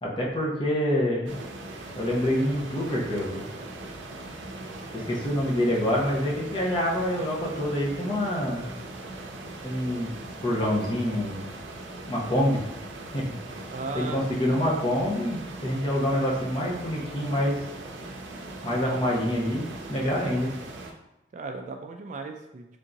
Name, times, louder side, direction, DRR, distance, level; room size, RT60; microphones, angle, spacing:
voice 1, 0.0-1.4 2.0-3.4 4.9-8.7 9.6-10.1 10.4-11.4 12.1-12.6 13.1-13.2 13.9-17.6 18.6-20.5, equal, 25° left, -3 dB, 0.9 m, -26 dB
sound 1, 1.3-20.9, right 2 dB, 90° right, 0.6 m, -40 dB
voice 2, 13.7-14.4 21.3-22.6, right 3 dB, 40° right, 4 dB, 0.3 m, -36 dB
3.5 x 2.8 x 3.8 m, 0.94 s
head